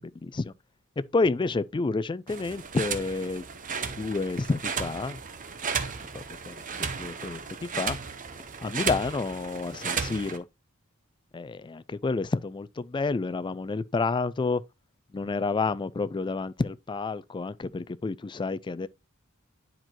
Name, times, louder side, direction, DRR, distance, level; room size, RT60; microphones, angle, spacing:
voice 1, 0.2-0.5 1.0-3.4 4.0-5.2 6.1-6.6 7.0-8.0 8.6-10.5 11.3-14.6 15.1-18.9, left 3 dB, 20° left, 0.3 m, -29 dB
sound 1, 2.3-10.4, right 6 dB, 40° right, 0.9 m, -34 dB
10.0 x 4.4 x 3.0 m
head